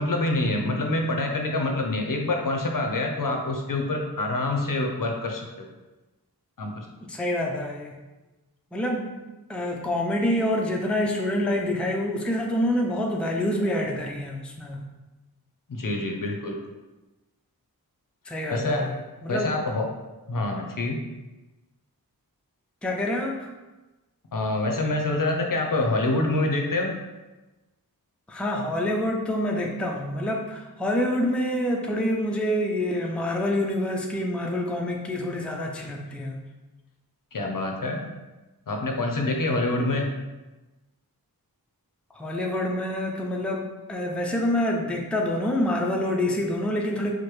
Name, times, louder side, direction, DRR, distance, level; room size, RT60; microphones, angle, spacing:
voice 1, 0.0-5.7 6.6-6.9 15.7-16.6 18.5-18.8 19.3-19.9 20.3-21.0 24.3-27.0 37.3-38.1 38.7-40.1, left 2 dB, 60° left, 2 dB, 0.6 m, -26 dB
voice 2, 7.1-8.0 8.7-9.1 9.5-14.8 18.3-19.0 19.2-19.6 22.8-23.5 28.3-36.4 42.1-47.1, left 1 dB, 5° left, 0 dB, 0.4 m, -27 dB
4.6 x 2.1 x 3.1 m, 1.1 s
wide cardioid pair, 55°, 37 cm